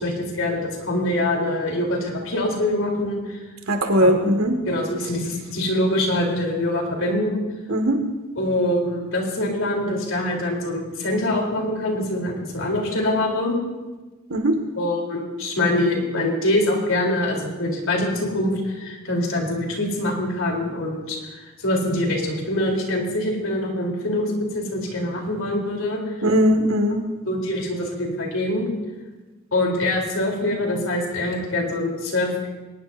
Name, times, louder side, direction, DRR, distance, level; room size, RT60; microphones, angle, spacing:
voice 1, 0.0-3.4 4.7-7.4 8.4-13.6 14.7-26.0 27.3-28.7 29.5-32.5, left 1 dB, 65° left, 0 dB, 3.7 m, -24 dB
voice 2, 3.7-4.6 7.7-8.0 14.3-14.6 26.2-27.0, equal, 80° right, 5 dB, 2.0 m, -19 dB
22.0 x 19.5 x 2.7 m, 1.2 s
head